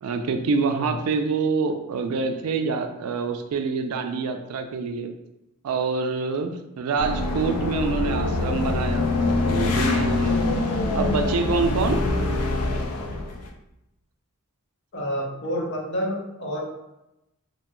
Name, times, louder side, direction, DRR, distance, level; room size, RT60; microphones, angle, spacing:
voice 1, 0.0-5.1 5.6-10.4 10.9-12.0, right 4 dB, 75° right, 6 dB, 0.3 m, -26 dB
sound 1, 7.0-13.5, left 2 dB, 85° left, 0.4 m, -24 dB
voice 2, 14.9-16.6, equal, 55° left, -2 dB, 0.7 m, -29 dB
2.9 x 2.7 x 2.2 m, 0.90 s
head